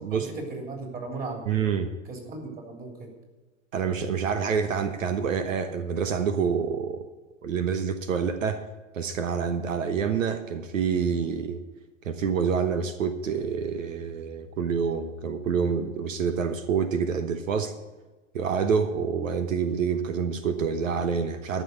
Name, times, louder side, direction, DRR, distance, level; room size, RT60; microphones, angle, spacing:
voice 1, 0.1-1.6 2.0-3.1, right 3 dB, 25° right, 2 dB, 3.4 m, -37 dB
voice 2, 1.5-1.9 3.7-7.0 7.4-8.6 8.9-11.6 12.0-17.7 18.3-21.6, right 6 dB, 90° right, 9 dB, 1.1 m, -27 dB
13.5 x 6.1 x 8.5 m, 1.2 s
hypercardioid pair, 115°, 38 cm